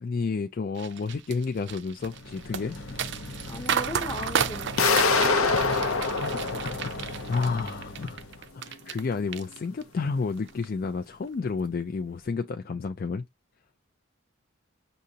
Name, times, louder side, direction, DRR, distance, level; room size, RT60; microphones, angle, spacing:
voice 1, 0.0-2.8 5.5-8.2 8.5-13.2, left 4 dB, 45° left, 0.3 m, -31 dB
sound 1, 0.8-9.0 9.3-10.0 10.4-10.6, right 8 dB, 55° right, 0.5 m, -32 dB
sound 2, 1.9-8.5, left 1 dB, 60° left, 1.0 m, -40 dB
voice 2, 3.5-5.5, left 1 dB, 20° left, 0.7 m, -38 dB
sound 3, 4.8-7.6, left 4 dB, 85° left, 0.7 m, -25 dB
6.2 x 2.7 x 2.8 m
head